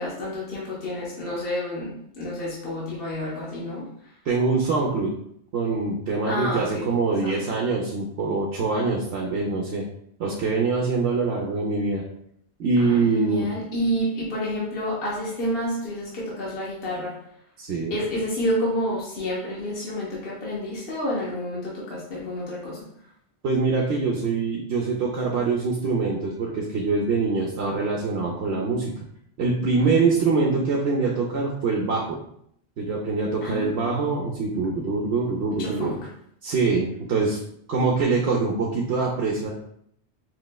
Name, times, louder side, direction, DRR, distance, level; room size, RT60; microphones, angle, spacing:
voice 1, 0.0-4.1 6.2-6.9 7.2-7.5 12.8-17.2 17.9-22.8 29.8-30.0 33.4-34.0 35.6-36.0, equal, 60° left, -6 dB, 1.1 m, -29 dB
voice 2, 4.2-5.1 5.5-9.9 10.2-12.0 12.6-13.5 17.6-18.0 23.4-28.9 29.4-32.2 32.8-35.9 36.4-37.4 37.7-39.5, right 4 dB, 75° right, -2 dB, 0.9 m, -24 dB
4.8 x 3.1 x 2.2 m, 0.70 s
omnidirectional pair, 1.1 m